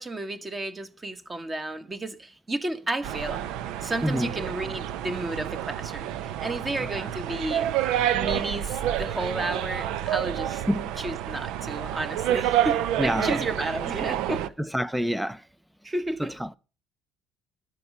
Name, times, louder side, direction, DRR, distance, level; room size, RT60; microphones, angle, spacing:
voice 1, 0.0-3.5 3.8-7.7 8.1-10.6 11.0-14.5 15.8-16.6, right 2 dB, 20° right, 1.6 m, -32 dB
sound 1, 3.0-14.5, right 11 dB, 75° right, 0.8 m, -29 dB
voice 2, 13.0-13.4 14.6-15.4 16.2-16.6, equal, ahead, 0.5 m, -27 dB
12.5 x 11.0 x 5.5 m
cardioid pair, 135°, 0 cm